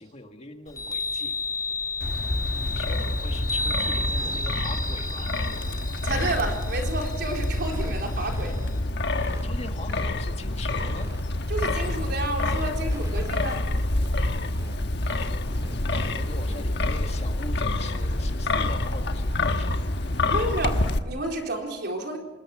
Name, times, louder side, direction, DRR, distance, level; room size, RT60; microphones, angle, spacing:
voice 1, 0.0-1.3 2.6-5.3 9.4-11.1 15.9-20.0, left 2 dB, 35° left, 5 dB, 1.8 m, -41 dB
Chime, 0.7-8.8, left 2 dB, 20° left, 2.6 m, -33 dB
Wind, 2.0-21.0, left 2 dB, 60° left, 1.3 m, -27 dB
sound 1, 3.5-3.6 4.1-4.4 5.0-5.4 5.7-5.8 6.0-6.5 7.0-7.1 7.3-7.4 7.6-7.9 8.2-8.7 9.1-10.1 10.5-11.2 11.7-14.1 14.5-16.1 16.4-16.6 18.0-18.1 18.5-18.6 19.8-20.0, right 1 dB, 20° right, 2.6 m, -43 dB
voice 2, 6.0-8.6 11.5-13.6 20.3-22.2, right 2 dB, 60° right, 2 dB, 4.2 m, -30 dB
26.5 x 21.0 x 6.1 m, 1.1 s
head